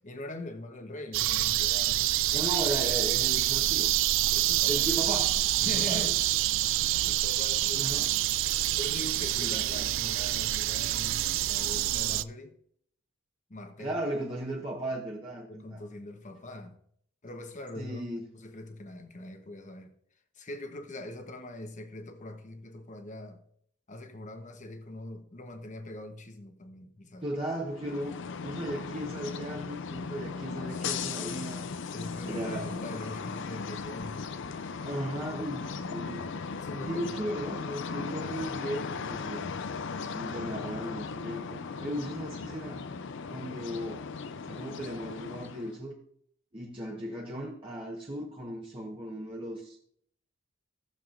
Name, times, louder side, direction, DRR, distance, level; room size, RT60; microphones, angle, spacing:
voice 1, 0.0-2.1 4.3-4.8 5.6-6.1 7.0-7.9 8.8-12.5 13.5-14.0 15.5-16.8 17.2-18.0 18.3-19.9 20.3-23.4 23.9-27.3 31.9-34.2 36.6-37.1, left 1 dB, 40° left, 1.0 m, -42 dB
sound 1, 1.1-12.2, right 15 dB, 65° right, 0.3 m, -27 dB
voice 2, 2.3-3.9 4.7-6.1 7.7-8.1 9.4-9.9 13.8-15.8 17.8-18.2 27.2-28.1 28.4-31.7 32.2-32.9 34.8-36.3 36.7-39.5 40.1-42.8 43.3-44.1 44.5-46.0 46.5-49.8, right 1 dB, 25° right, 1.2 m, -36 dB
sound 2, 27.7-45.8, left 5 dB, 65° left, 0.5 m, -37 dB
15.5 x 7.0 x 2.5 m
head